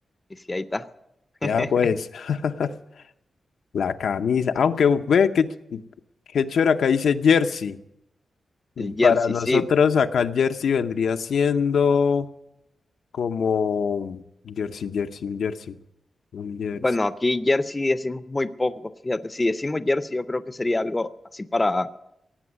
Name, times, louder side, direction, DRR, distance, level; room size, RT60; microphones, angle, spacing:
voice 1, 0.5-0.8 1.4-1.7 8.8-9.2 9.5-9.6 16.8-18.7 19.0-21.1 21.3-21.9, left 2 dB, 15° left, 13 dB, 0.5 m, -24 dB
voice 2, 1.4-2.7 3.7-5.8 6.3-7.8 8.8-12.3 13.1-15.8 16.3-16.8, left 6 dB, 90° left, 7 dB, 0.8 m, -22 dB
17.5 x 8.0 x 9.7 m, 0.82 s
wide cardioid pair, 170°, 0 cm